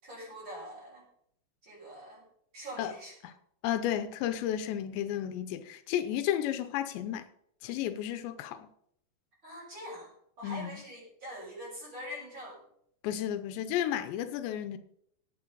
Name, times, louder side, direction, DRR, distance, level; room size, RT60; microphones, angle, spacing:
voice 1, 0.0-1.1 1.6-2.3 2.5-3.1 9.4-12.6, equal, 25° right, 7.4 m, -44 dB
voice 2, 3.6-7.2 7.6-8.7 10.4-10.7 13.0-14.8, left 11 dB, 85° left, 3.2 m, -32 dB
18.0 x 9.3 x 5.3 m
omnidirectional pair, 4.9 m